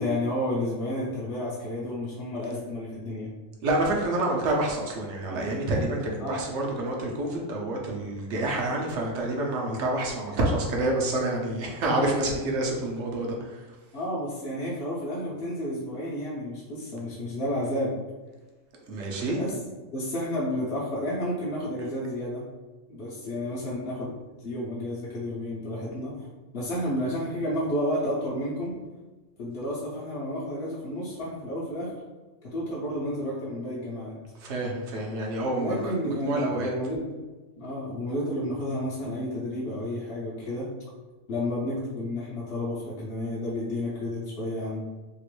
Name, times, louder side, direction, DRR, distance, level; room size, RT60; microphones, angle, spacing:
voice 1, 0.0-3.3 6.2-6.4 13.9-17.9 19.2-19.5 19.9-22.4 22.9-24.1 24.4-26.1 26.5-28.7 29.4-31.9 32.4-34.1 35.6-37.1 37.6-40.7 41.3-44.8, left 1 dB, 60° left, -7 dB, 0.8 m, -31 dB
voice 2, 3.6-13.8 18.9-19.4 34.3-36.7, right 2 dB, 65° right, -1 dB, 0.9 m, -28 dB
2.9 x 2.4 x 3.0 m, 1.2 s
omnidirectional pair, 1.4 m